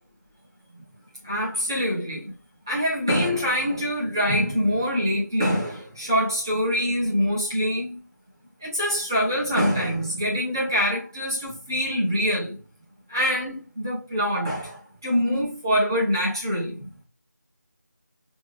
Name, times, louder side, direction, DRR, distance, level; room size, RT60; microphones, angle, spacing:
voice 1, 1.2-2.3 2.7-8.0 8.6-12.6 13.1-16.9, equal, 15° right, 0.6 m, -24 dB
4.7 x 2.6 x 3.1 m
figure-of-eight pair, 175°, 10 cm